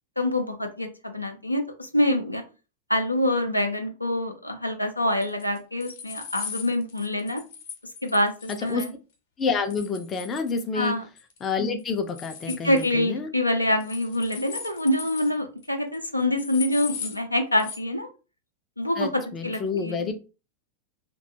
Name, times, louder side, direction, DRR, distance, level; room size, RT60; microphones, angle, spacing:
voice 1, 0.2-2.4 2.9-7.4 8.0-8.9 10.7-11.0 12.5-18.1 18.8-20.1, left 1 dB, 85° left, 4 dB, 0.4 m, -26 dB
sound 1, 5.2-8.9 9.7-10.9 11.2-11.5 11.8-12.9 13.8-15.3 15.6-15.7 15.9-16.0 16.4-17.2 17.6-17.8, left 6 dB, 55° left, 0.8 m, -39 dB
voice 2, 9.4-10.9 11.4-13.3 19.0-20.1, left 5 dB, 25° left, 5 dB, 0.4 m, -28 dB
2.4 x 2.2 x 2.7 m, 0.32 s
figure-of-eight pair, 90°, 0 cm